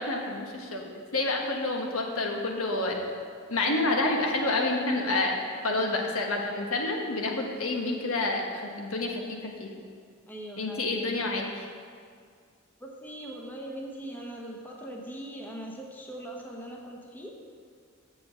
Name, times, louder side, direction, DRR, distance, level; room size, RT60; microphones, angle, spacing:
voice 1, 0.0-3.0 3.5-5.4 5.6-9.7 10.6-11.7, left 2 dB, 80° left, 1 dB, 1.3 m, -29 dB
voice 2, 10.3-11.1 12.8-17.4, right 1 dB, 10° left, -1 dB, 0.9 m, -41 dB
7.0 x 6.9 x 7.4 m, 2.1 s
head